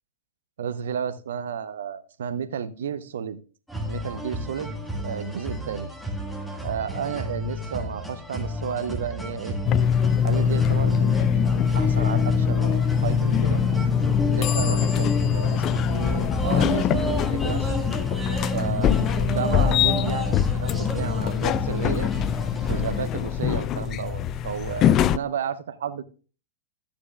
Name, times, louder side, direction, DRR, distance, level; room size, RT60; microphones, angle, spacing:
voice 1, 0.6-3.4 3.9-4.8 5.0-5.9 6.6-9.6 10.2-11.2 11.7-13.6 14.2-17.7 18.5-19.0 19.3-22.1 22.7-26.0, right 8 dB, 70° right, 14 dB, 0.7 m, -32 dB
sound 1, 3.7-23.0, equal, ahead, 1.8 m, -32 dB
sound 2, 9.7-25.2, left 8 dB, 35° left, 0.3 m, -23 dB
sound 3, 10.4-20.3, left 4 dB, 15° left, 1.3 m, -31 dB
13.0 x 8.6 x 2.3 m, 0.36 s
figure-of-eight pair, 100°, 0 cm